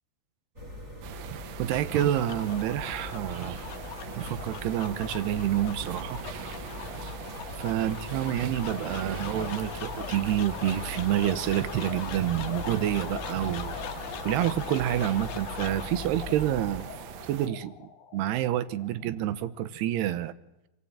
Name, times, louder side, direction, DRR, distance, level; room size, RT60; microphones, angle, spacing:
sound 1, 0.6-16.8, left 2 dB, 25° right, 3.3 m, -42 dB
sound 2, 1.0-17.5, right 10 dB, 70° right, 2.5 m, -42 dB
sound 3, 1.4-19.7, left 9 dB, 70° left, 2.0 m, -41 dB
voice 1, 1.6-3.6 4.2-6.2 7.0-7.1 7.6-13.8 14.2-16.9 17.3-20.3, right 12 dB, 90° right, 13 dB, 3.0 m, -28 dB
27.0 x 16.0 x 8.7 m, 0.94 s
omnidirectional pair, 4.6 m